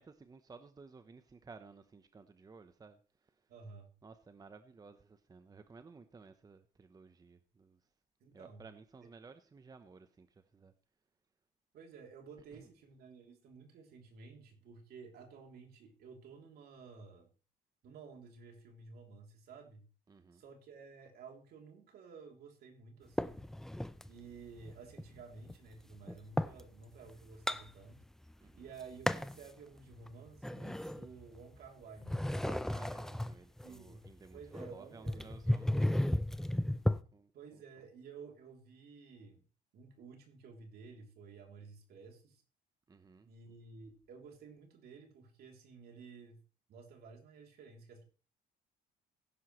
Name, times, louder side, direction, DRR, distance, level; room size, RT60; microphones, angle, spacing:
voice 1, 0.0-3.5 4.0-7.8 8.3-10.7 12.5-12.7 20.1-20.4 28.4-28.6 32.7-36.8 37.1-37.6 42.9-43.3, right 4 dB, 20° right, 0.9 m, -56 dB
voice 2, 3.5-3.9 8.2-8.6 11.7-17.3 17.8-19.8 20.3-23.4 24.1-28.0 28.5-32.8 33.6-34.0 34.3-35.4 37.3-39.4 39.7-42.4 43.2-46.4 46.7-48.0, right 5 dB, 65° right, 3.2 m, -53 dB
sound 1, 23.2-24.1 24.6-26.6 27.1-28.3 28.6-29.4 29.9-31.6 32.0-37.0, left 1 dB, 5° left, 0.5 m, -34 dB
16.5 x 10.5 x 3.2 m
cardioid pair, 110°, 17 cm